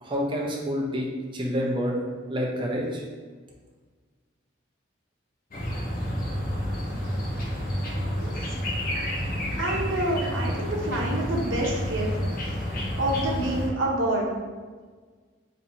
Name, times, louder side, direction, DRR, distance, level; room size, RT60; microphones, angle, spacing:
voice 1, 0.0-1.1 1.3-1.9 2.3-3.0, equal, 25° right, -1 dB, 0.5 m, -28 dB
sound 1, 5.5-13.7, equal, 45° left, 0.6 m, -29 dB
voice 2, 7.8-8.4 9.6-12.2 12.7-14.3, right 1 dB, 75° right, -2 dB, 0.8 m, -28 dB
2.8 x 2.8 x 4.2 m, 1.5 s
head